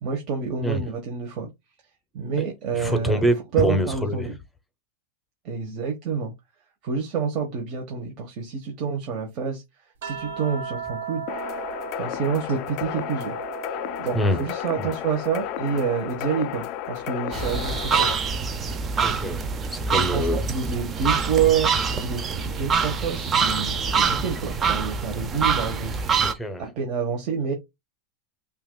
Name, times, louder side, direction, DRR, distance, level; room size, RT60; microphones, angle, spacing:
voice 1, 0.0-1.5 2.1-3.2 3.5-4.4 5.4-6.3 6.8-9.6 10.0-11.2 11.9-13.4 14.0-18.1 19.9-25.9 26.6-27.5, right 6 dB, 40° right, 1.1 m, -28 dB
voice 2, 2.7-4.3 13.0-13.1 14.1-14.4 14.8-14.9 19.0-20.4 26.2-26.6, equal, 5° left, 0.8 m, -25 dB
sound 1, 10.0-14.5 14.8-16.5 18.0-18.2, right 8 dB, 85° right, 1.1 m, -38 dB
sound 2, 11.3-18.1, left 11 dB, 45° left, 0.3 m, -33 dB
sound 3, 17.3-26.3, right 5 dB, 20° right, 0.6 m, -25 dB
5.6 x 2.5 x 2.2 m
supercardioid pair, 140°, 0 cm